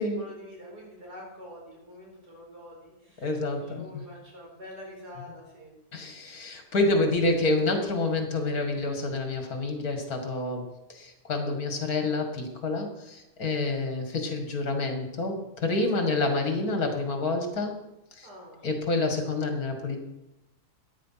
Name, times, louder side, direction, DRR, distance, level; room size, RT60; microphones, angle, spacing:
voice 1, 0.0-5.7 13.4-13.5 15.9-16.1 18.2-18.7, left 1 dB, 80° right, -2 dB, 5.4 m, -46 dB
voice 2, 3.2-3.9 5.9-17.8 18.2-18.3 18.6-20.0, left 2 dB, 65° left, 4 dB, 2.4 m, -28 dB
13.5 x 10.0 x 5.8 m, 0.96 s
omnidirectional pair, 1.7 m